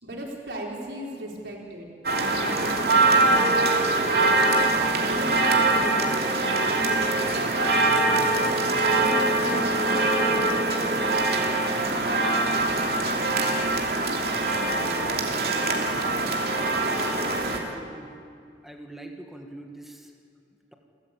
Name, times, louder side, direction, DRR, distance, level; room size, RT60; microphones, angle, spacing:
voice 1, 0.0-1.9 2.1-3.7 5.0-6.4 6.7-7.5 8.9-11.2, right 1 dB, 85° right, -2 dB, 4.6 m, -37 dB
sound 1, 2.0-17.6, right 2 dB, 60° right, 2.8 m, -23 dB
voice 2, 17.7-18.2 18.6-20.1, right 1 dB, ahead, 2 dB, 1.7 m, -43 dB
29.5 x 14.0 x 8.6 m, 2.3 s
head